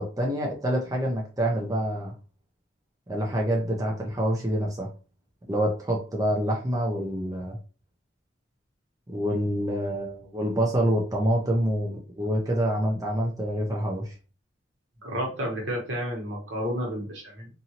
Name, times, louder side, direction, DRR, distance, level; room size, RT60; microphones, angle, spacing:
voice 1, 0.0-2.1 3.1-4.9 5.5-7.6 9.1-14.1, equal, 20° right, -1 dB, 0.6 m, -26 dB
voice 2, 15.0-17.5, equal, 70° right, 0 dB, 1.2 m, -31 dB
2.8 x 2.6 x 2.8 m, 0.35 s
head